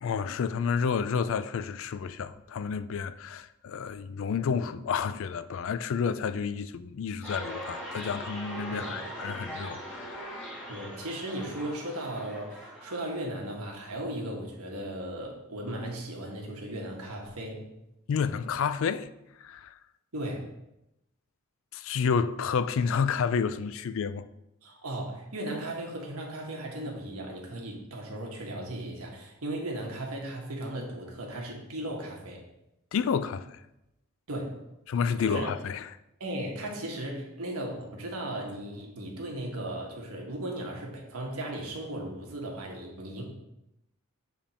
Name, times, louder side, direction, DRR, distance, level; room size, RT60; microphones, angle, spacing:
voice 1, 0.0-10.6 18.1-19.1 19.4-19.8 21.7-24.2 32.9-33.5 34.9-35.9, left 6 dB, 60° left, 0.3 m, -30 dB
sound 1, 7.2-13.2, right 1 dB, 5° left, 2.0 m, -41 dB
voice 2, 8.7-9.1 10.7-17.7 20.1-20.5 24.6-32.4 34.3-34.6 35.2-35.5 36.2-43.2, right 1 dB, 90° right, 1.4 m, -36 dB
7.3 x 3.5 x 4.2 m
head